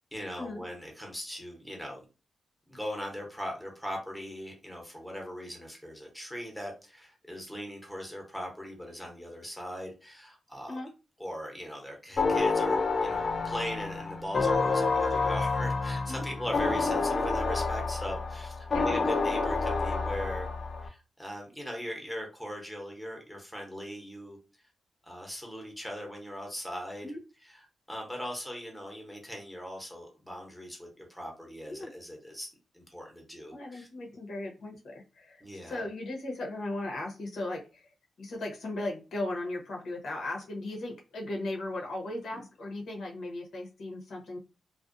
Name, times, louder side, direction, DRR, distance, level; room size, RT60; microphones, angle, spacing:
voice 1, 0.1-2.0 2.7-10.8 11.2-20.5 20.8-24.4 25.0-27.1 27.4-32.5 32.7-33.9 35.4-35.8, equal, 5° left, 1 dB, 0.8 m, -39 dB
sound 1, 12.2-20.9, left 4 dB, 45° left, 0.4 m, -28 dB
voice 2, 33.5-37.9 38.2-44.4, left 2 dB, 80° left, 0 dB, 0.9 m, -37 dB
2.5 x 2.1 x 2.5 m, 0.31 s
wide cardioid pair, 120°, 0 cm